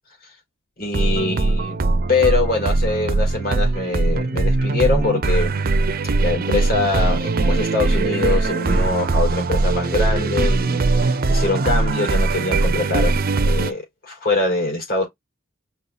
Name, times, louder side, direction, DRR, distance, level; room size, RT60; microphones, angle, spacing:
voice 1, 0.8-1.8 2.1-5.5 6.2-15.1, left 3 dB, 50° left, 3.8 m, -23 dB
sound 1, 0.9-13.7, right 3 dB, 50° right, 0.6 m, -20 dB
5.4 x 3.6 x 2.3 m
head